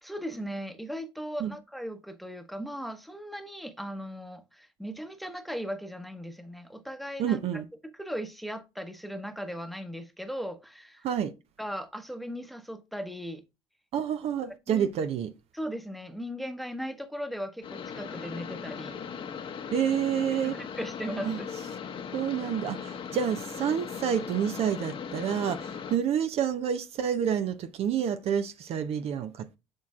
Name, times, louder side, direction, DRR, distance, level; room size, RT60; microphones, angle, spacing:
voice 1, 0.0-11.1 11.6-13.4 14.7-14.9 15.5-19.0 20.4-21.5, equal, ahead, 1.0 m, -38 dB
voice 2, 7.2-7.6 11.0-11.3 13.9-15.3 19.7-20.6 21.3-21.4 22.1-29.3, right 8 dB, 50° right, 0.7 m, -28 dB
sound 1, 17.6-26.0, left 7 dB, 40° left, 0.9 m, -38 dB
7.1 x 6.3 x 2.4 m
hypercardioid pair, 65°, 13 cm